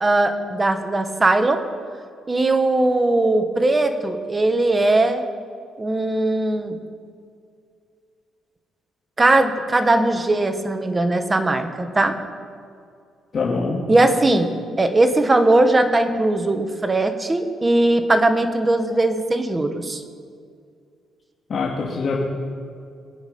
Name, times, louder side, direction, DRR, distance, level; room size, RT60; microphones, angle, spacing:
voice 1, 0.0-1.6 2.3-5.2 5.8-6.8 9.2-12.1 13.9-14.5 14.8-20.0, right 2 dB, 25° right, 7 dB, 1.5 m, -19 dB
voice 2, 13.3-13.8 21.5-22.2, left 4 dB, 50° left, -4 dB, 2.4 m, -23 dB
22.0 x 8.9 x 5.5 m, 2.3 s
cardioid pair, 90°, 0 cm